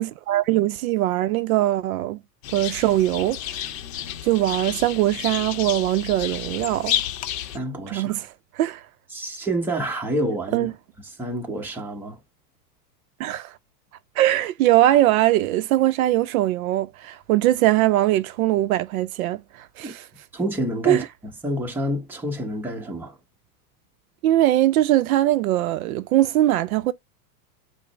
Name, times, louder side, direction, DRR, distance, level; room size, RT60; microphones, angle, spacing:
voice 1, 0.0-2.2 2.5-3.4 4.2-7.0 7.9-8.8 10.5-10.7 13.2-13.5 14.2-20.1 20.9-21.1 24.2-26.9, right 14 dB, 60° right, 0.5 m, -21 dB
sound 1, 2.4-7.6, left 11 dB, 55° left, 0.7 m, -31 dB
voice 2, 7.5-8.2 9.1-10.7 11.2-12.2 19.8-19.9 20.3-21.0 21.4-23.2, right 1 dB, 5° right, 0.7 m, -28 dB
4.9 x 2.1 x 4.5 m
supercardioid pair, 135°, 48 cm